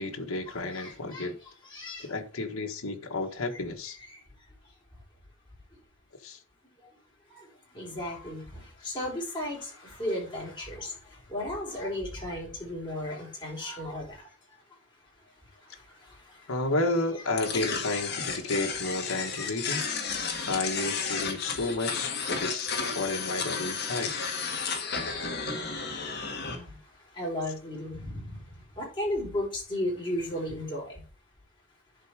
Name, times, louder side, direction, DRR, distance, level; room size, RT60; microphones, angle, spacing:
voice 1, 0.0-1.3 2.0-4.0 6.2-6.4 16.5-19.8 20.4-24.1, left 2 dB, 85° left, 1.5 m, -31 dB
voice 2, 0.7-1.3 1.6-2.1 4.1-4.2 7.7-10.9 11.3-14.2 19.0-19.5 26.5-26.8 27.2-28.4 28.8-31.0, left 1 dB, 20° left, 4.4 m, -34 dB
sound 1, 17.4-26.6, left 5 dB, 50° left, 1.8 m, -32 dB
11.0 x 4.7 x 4.8 m
head